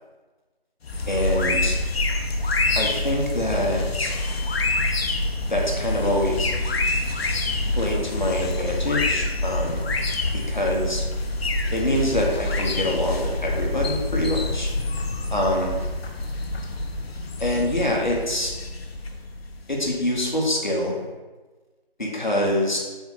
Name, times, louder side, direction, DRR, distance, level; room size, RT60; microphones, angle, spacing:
sound 1, 0.8-20.3, left 2 dB, 80° left, 0.5 m, -26 dB
voice 1, 1.1-1.8 2.7-4.1 5.5-6.5 7.8-9.9 10.3-11.0 11.7-14.7 15.3-15.7 17.4-18.5 19.7-21.0 22.0-22.8, left 1 dB, 50° left, -1 dB, 0.7 m, -25 dB
3.5 x 2.8 x 3.7 m, 1.3 s
figure-of-eight pair, 175°, 30 cm